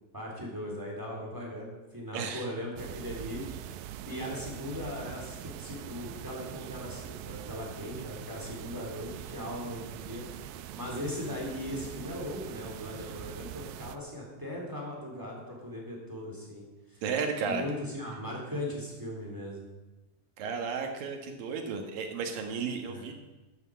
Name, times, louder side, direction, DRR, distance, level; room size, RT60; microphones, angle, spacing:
voice 1, 0.1-3.4 4.0-10.2 10.7-16.6 16.9-17.0 17.4-19.6 22.9-23.0, left 1 dB, 5° right, -2 dB, 3.2 m, -38 dB
voice 2, 2.1-2.5 17.0-17.6 20.4-23.1, right 5 dB, 65° right, 4 dB, 3.2 m, -33 dB
sound 1, 2.8-14.0, right 11 dB, 90° right, 2.7 m, -43 dB
12.0 x 9.3 x 7.6 m, 1.1 s
omnidirectional pair, 4.4 m